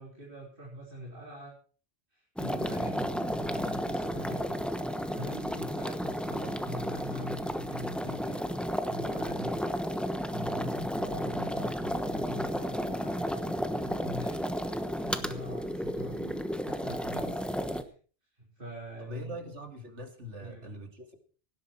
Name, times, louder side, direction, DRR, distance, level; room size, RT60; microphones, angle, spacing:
voice 1, 0.0-1.5 2.1-4.6 5.1-8.4 8.9-9.6 10.3-14.4 14.9-17.5 17.8-17.9 18.4-19.4 20.4-20.8, equal, 50° right, -4 dB, 4.4 m, -43 dB
sound 1, 2.4-17.8, equal, ahead, 1.0 m, -33 dB
voice 2, 19.0-21.2, equal, 90° right, 5 dB, 2.8 m, -43 dB
17.0 x 12.0 x 4.5 m, 0.40 s
omnidirectional pair, 1.2 m